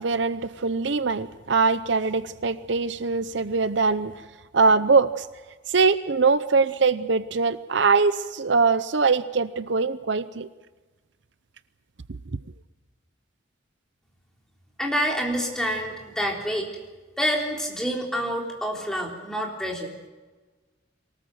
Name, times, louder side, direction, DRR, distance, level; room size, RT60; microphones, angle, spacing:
voice 1, 0.0-4.1 4.5-5.3 5.7-10.5, right 4 dB, 65° right, 14 dB, 0.7 m, -22 dB
voice 2, 14.8-16.7 17.2-19.9, equal, 5° left, 0 dB, 3.6 m, -27 dB
23.5 x 19.0 x 7.7 m, 1.3 s
head